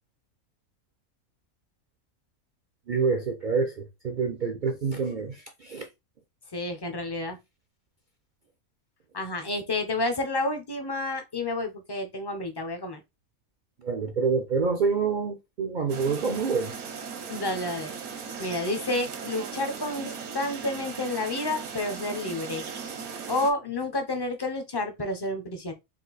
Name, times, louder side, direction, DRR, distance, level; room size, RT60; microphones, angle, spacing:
voice 1, 2.9-5.9 13.8-16.7, right 5 dB, 60° right, 0.5 m, -27 dB
voice 2, 6.5-7.4 9.1-13.0 17.3-17.9 18.4-22.6 23.3-25.7, left 2 dB, 35° left, 0.4 m, -30 dB
sound 1, 15.9-23.5, right 6 dB, 80° right, 1.4 m, -38 dB
4.2 x 2.5 x 3.9 m
omnidirectional pair, 1.5 m